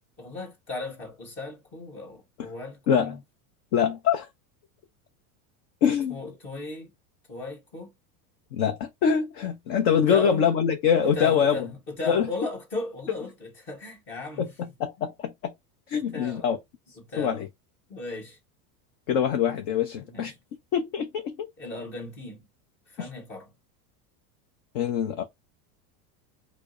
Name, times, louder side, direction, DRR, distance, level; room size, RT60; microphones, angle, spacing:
voice 1, 0.0-3.2 6.1-6.9 7.3-7.9 9.9-10.5 11.0-14.5 15.9-16.5 17.0-17.4 17.9-18.4 20.0-20.4 21.6-22.5 22.9-23.5, left 2 dB, 25° left, 1.4 m, -37 dB
voice 2, 2.9-3.2 3.7-4.3 5.8-6.2 8.5-11.6 12.1-12.3 14.4-14.5 14.8-15.5 15.9-16.6 17.2-17.5 19.1-20.3 20.7-21.5 23.0-23.1 24.7-25.2, left 7 dB, 40° left, 0.5 m, -24 dB
4.8 x 2.0 x 2.5 m
supercardioid pair, 170°, 46 cm